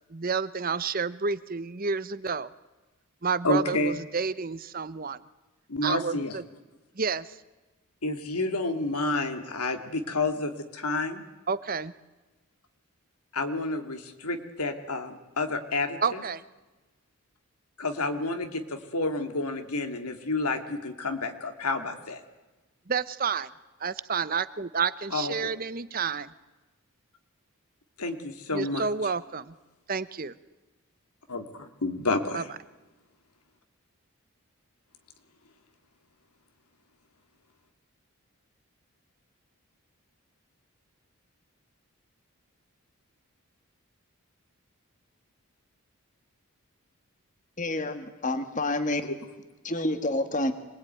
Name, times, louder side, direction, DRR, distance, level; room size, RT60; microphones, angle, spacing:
voice 1, 0.1-2.5 3.2-5.2 5.8-6.4 7.0-7.4 11.5-11.9 16.0-16.4 22.9-23.5 23.8-26.3 28.5-29.5 29.9-30.3 32.3-32.4, right 5 dB, 40° right, 16 dB, 0.8 m, -30 dB
voice 2, 3.4-3.9 5.7-6.4 8.0-11.2 13.3-16.2 17.8-22.2 25.1-25.5 28.0-28.9 31.3-32.4, left 2 dB, 90° left, 6 dB, 2.5 m, -30 dB
voice 3, 47.6-49.0 49.6-50.5, left 2 dB, 35° left, 9 dB, 1.6 m, -28 dB
25.5 x 20.5 x 9.3 m, 1.1 s
head